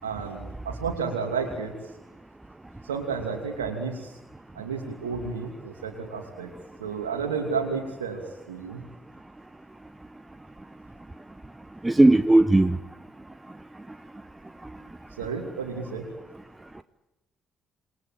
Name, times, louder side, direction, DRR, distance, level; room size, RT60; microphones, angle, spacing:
voice 1, 0.0-1.9 2.8-4.2 4.5-6.5 6.8-8.2 8.5-8.8 15.1-16.1, right 5 dB, 80° right, 1 dB, 2.7 m, -31 dB
voice 2, 11.8-12.8, right 2 dB, 15° right, 13 dB, 1.1 m, -17 dB
28.0 x 20.5 x 9.1 m, 1.0 s
figure-of-eight pair, 45°, 0 cm